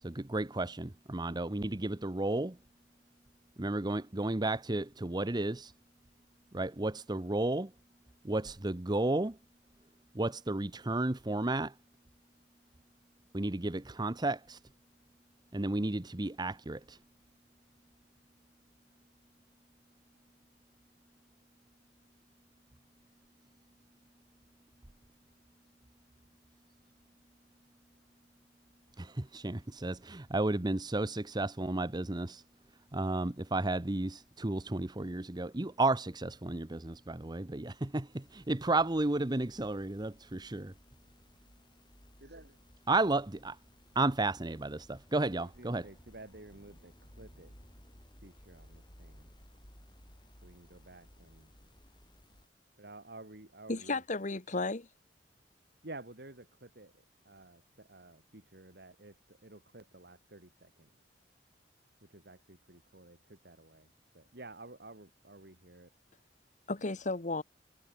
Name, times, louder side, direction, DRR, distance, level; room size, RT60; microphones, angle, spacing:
voice 1, 0.0-2.6 3.6-5.7 6.5-7.7 8.2-9.4 10.1-11.8 13.3-14.6 15.5-17.0 29.0-32.4 32.9-40.7 42.9-43.6 43.9-45.9, right 2 dB, 25° right, 0.9 m, -33 dB
sound 1, 38.1-52.5, equal, 25° left, 6.6 m, -59 dB
voice 2, 42.2-42.6 45.4-47.5 48.2-49.3 50.4-51.5 52.8-54.0 55.8-60.9 62.0-65.9, right 2 dB, 65° right, 3.4 m, -52 dB
voice 3, 53.7-54.9 66.7-67.4, left 3 dB, 45° left, 1.4 m, -33 dB
head